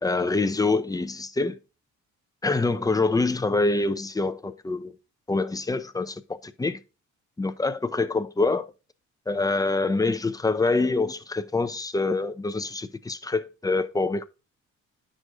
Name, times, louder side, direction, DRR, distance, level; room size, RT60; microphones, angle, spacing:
voice 1, 0.0-1.6 2.4-5.0 5.3-6.8 7.4-8.7 9.3-14.2, left 3 dB, 10° left, 0.5 m, -25 dB
9.6 x 6.3 x 2.6 m
cardioid pair, 90°, 30 cm